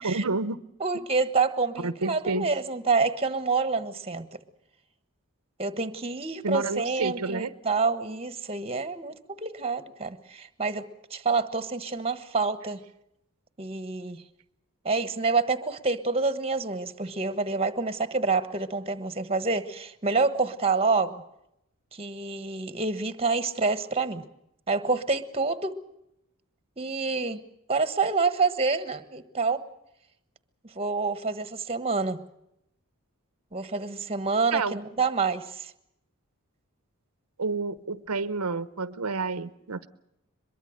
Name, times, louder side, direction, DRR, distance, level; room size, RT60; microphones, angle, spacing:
voice 1, 0.0-0.6 1.8-2.5 6.4-7.5 34.5-34.8 37.4-39.9, right 3 dB, 85° right, 14 dB, 0.9 m, -29 dB
voice 2, 0.8-4.4 5.6-12.8 13.6-14.2 14.8-21.2 21.9-24.2 24.7-25.8 26.8-27.4 27.7-29.6 30.7-32.2 33.5-35.7, right 4 dB, 25° right, 12 dB, 1.3 m, -27 dB
23.0 x 22.5 x 6.5 m, 0.82 s
head